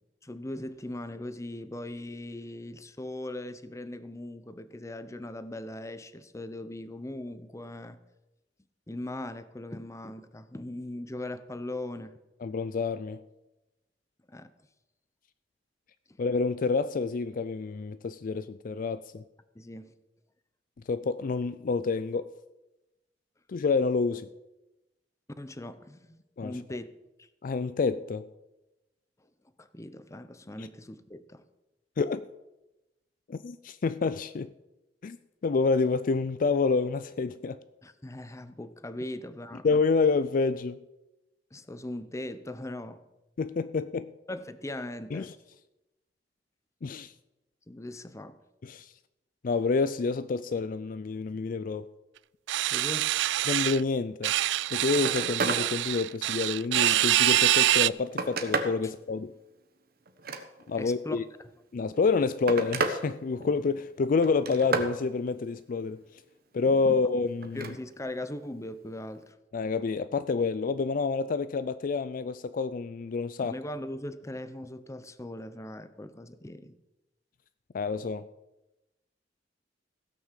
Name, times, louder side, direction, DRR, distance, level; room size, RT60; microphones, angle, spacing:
voice 1, 0.2-8.0 8.9-12.1 14.3-14.5 19.5-19.9 25.4-26.9 27.2-27.3 29.6-31.4 37.8-39.7 41.5-43.0 44.3-45.3 47.7-48.4 52.7-53.1 58.8-58.9 60.8-61.2 66.8-66.9 67.5-69.3 73.4-76.7, left 1 dB, 15° left, 0.7 m, -39 dB
voice 2, 12.4-13.2 16.2-19.2 20.9-22.3 23.5-24.3 26.4-26.8 27.4-28.3 32.0-32.2 33.3-34.5 35.0-35.2 35.4-37.6 39.6-40.8 43.4-44.1 45.1-45.3 46.8-47.1 48.6-48.9 49.4-51.9 53.5-54.3 54.7-59.3 60.7-61.2 61.7-66.0 66.5-67.7 69.5-73.6 77.7-78.3, left 4 dB, 50° left, 0.4 m, -28 dB
sound 1, 52.5-53.8 54.2-57.9, right 14 dB, 85° right, 0.3 m, -25 dB
Telephone, 54.4-54.6 54.9-55.7 56.1-57.2 57.8-58.8 60.1-60.9 61.9-63.0 63.3-63.8 64.2-64.9 67.4-67.8 69.2-69.3, right 3 dB, 55° right, 1.2 m, -32 dB
16.5 x 6.2 x 7.4 m
head